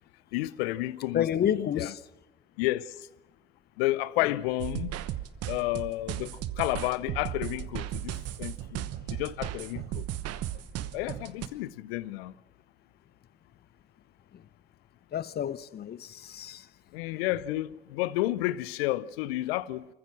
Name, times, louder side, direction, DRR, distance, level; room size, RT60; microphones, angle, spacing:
voice 1, 0.3-1.9 2.6-3.1 3.8-5.0 5.5-10.0 10.9-12.3 16.9-19.9, left 17 dB, 70° left, 0.7 m, -31 dB
voice 2, 1.1-2.0 15.1-16.7, left 9 dB, 30° left, 0.7 m, -30 dB
sound 1, 4.6-11.5, right 12 dB, 50° right, 1.1 m, -36 dB
26.0 x 14.5 x 7.6 m
hypercardioid pair, 60°, 31 cm